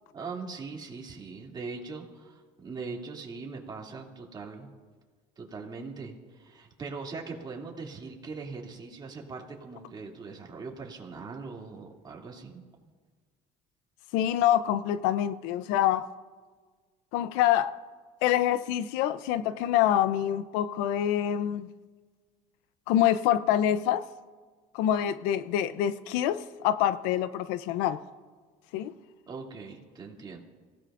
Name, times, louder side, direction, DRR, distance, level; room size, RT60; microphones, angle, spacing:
voice 1, 0.1-4.7 5.4-12.6 29.3-30.4, right 4 dB, 25° right, 2.7 m, -41 dB
voice 2, 14.1-16.1 17.1-17.8 18.2-21.7 22.9-24.1 24.7-28.0 28.7-28.9, left 11 dB, 85° left, 0.6 m, -26 dB
26.5 x 16.5 x 2.5 m
cardioid pair, 120°, 16 cm